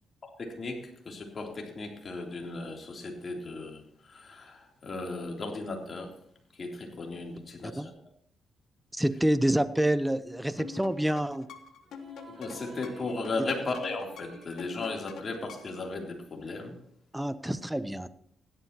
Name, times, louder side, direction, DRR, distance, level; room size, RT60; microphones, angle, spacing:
voice 1, 0.2-3.8 4.1-6.1 6.6-8.0 12.4-16.7, left 3 dB, 45° left, 1 dB, 3.4 m, -36 dB
voice 2, 8.9-11.5 17.1-18.1, right 1 dB, 5° right, 14 dB, 0.8 m, -27 dB
sound 1, 10.6-15.9, left 7 dB, 75° left, 1.3 m, -46 dB
sound 2, 11.8-16.6, right 3 dB, 40° right, 4.2 m, -54 dB
16.5 x 11.5 x 3.0 m, 0.66 s
cardioid pair, 80°, 0 cm